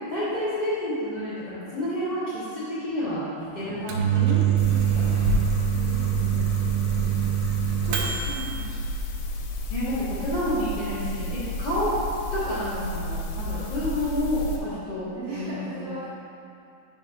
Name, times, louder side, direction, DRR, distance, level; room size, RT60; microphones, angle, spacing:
voice 1, 0.0-5.3 7.8-7.9 9.7-11.9 12.3-15.9, equal, 55° left, -13 dB, 1.2 m, -30 dB
Microwave oven, 3.6-8.5, right 9 dB, 90° right, 2.0 m, -24 dB
sound 1, 4.6-14.6, left 1 dB, 80° left, 2.4 m, -32 dB
voice 2, 5.7-6.6 6.9-7.4 8.0-8.7 11.9-12.1 15.1-16.1, right 3 dB, 75° right, -10 dB, 1.6 m, -38 dB
6.0 x 4.1 x 5.1 m, 2.6 s
omnidirectional pair, 4.7 m